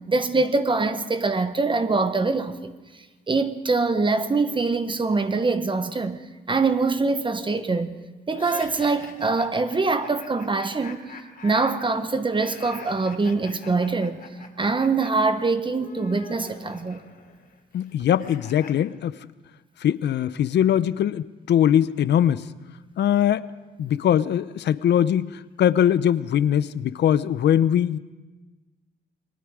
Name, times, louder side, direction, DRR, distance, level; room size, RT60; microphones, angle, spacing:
voice 1, 0.1-2.7 3.3-6.2 6.5-7.9 8.3-11.0 11.4-14.2 14.6-17.0, right 3 dB, 25° right, 1.2 m, -23 dB
sound 1, 8.3-15.1 15.4-18.7, left 5 dB, 55° left, 3.1 m, -44 dB
voice 2, 17.7-19.2 19.8-22.4 23.0-23.4 23.8-28.0, left 10 dB, 70° left, 0.7 m, -21 dB
28.5 x 20.0 x 4.9 m
cardioid pair, 100°, 18 cm